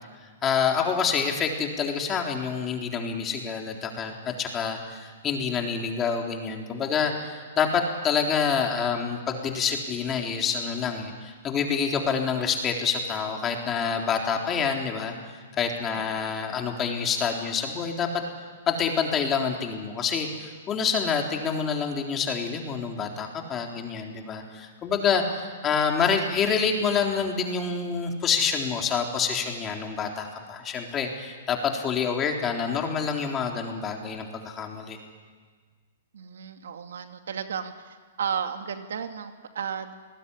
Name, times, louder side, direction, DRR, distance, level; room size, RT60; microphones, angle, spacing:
voice 1, 0.4-15.1 15.6-18.1 18.7-35.0, left 6 dB, 20° left, 2 dB, 3.9 m, -27 dB
voice 2, 15.9-16.3 36.1-39.9, right 7 dB, 80° right, 6 dB, 2.5 m, -34 dB
29.0 x 20.0 x 10.0 m, 1.5 s
hypercardioid pair, 145°, 0 cm